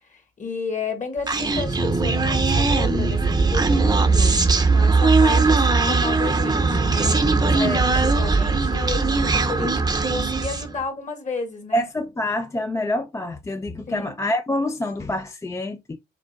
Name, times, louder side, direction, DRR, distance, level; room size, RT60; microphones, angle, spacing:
voice 1, 0.1-11.8 13.9-14.1, left 4 dB, 40° left, 1.6 m, -33 dB
Human voice, 1.3-10.7, right 3 dB, 20° right, 0.7 m, -19 dB
voice 2, 11.7-16.0, left 1 dB, 15° left, 0.3 m, -26 dB
5.1 x 3.6 x 2.3 m
cardioid pair, 90°, 20 cm